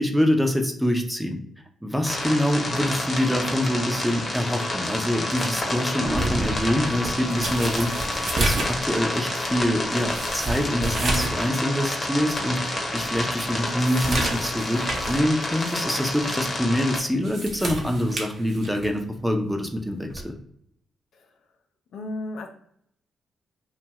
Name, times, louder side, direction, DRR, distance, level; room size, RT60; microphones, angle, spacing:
voice 1, 0.0-1.4 1.8-7.9 8.4-20.3, equal, 5° right, 4 dB, 0.6 m, -25 dB
sound 1, 2.0-17.0, left 2 dB, 40° left, 0.9 m, -29 dB
sound 2, 6.0-11.4 11.8-11.9 12.5-12.6 13.0-15.2 15.6-15.8 17.0-19.0 20.1-20.3, right 2 dB, 65° right, 0.7 m, -30 dB
voice 2, 21.1-21.5 21.9-22.5, left 2 dB, 70° left, 3 dB, 0.4 m, -35 dB
2.6 x 2.3 x 3.0 m, 0.68 s
hypercardioid pair, 45°, 0 cm